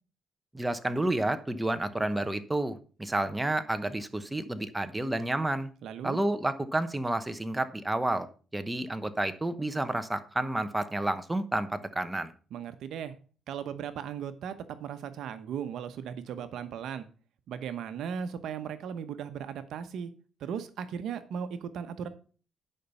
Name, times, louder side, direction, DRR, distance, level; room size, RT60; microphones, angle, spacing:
voice 1, 0.5-5.7 6.0-8.3 8.5-12.3, right 1 dB, 10° right, 10 dB, 1.0 m, -30 dB
voice 2, 5.8-6.2 12.5-13.2 13.5-17.1 17.5-20.1 20.4-22.1, right 8 dB, 75° right, 11 dB, 1.0 m, -37 dB
10.0 x 5.3 x 5.6 m, 0.38 s
cardioid pair, 90°, 0 cm